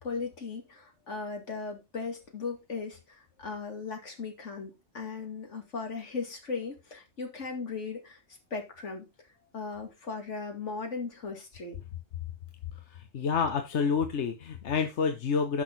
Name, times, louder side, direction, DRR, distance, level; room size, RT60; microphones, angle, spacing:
voice 1, 0.0-9.1 9.5-11.8, left 4 dB, 90° left, 3 dB, 2.6 m, -37 dB
voice 2, 12.7-15.6, left 5 dB, 75° left, 6 dB, 1.2 m, -29 dB
10.0 x 6.3 x 3.9 m, 0.24 s
omnidirectional pair, 1.2 m